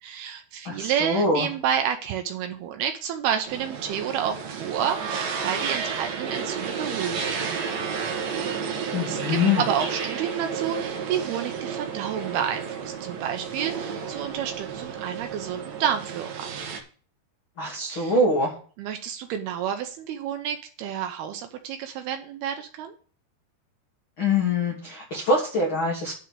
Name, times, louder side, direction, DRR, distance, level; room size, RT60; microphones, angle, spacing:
voice 1, 0.0-7.8 8.6-16.5 17.9-18.2 18.8-22.9, right 9 dB, 80° right, 6 dB, 2.4 m, -30 dB
voice 2, 0.6-1.5 8.9-9.6 17.6-18.5 24.2-26.1, left 2 dB, 85° left, -1 dB, 1.1 m, -24 dB
sound 1, 3.4-16.8, right 6 dB, 60° right, 2.8 m, -32 dB
10.0 x 4.4 x 7.5 m, 0.43 s
omnidirectional pair, 5.2 m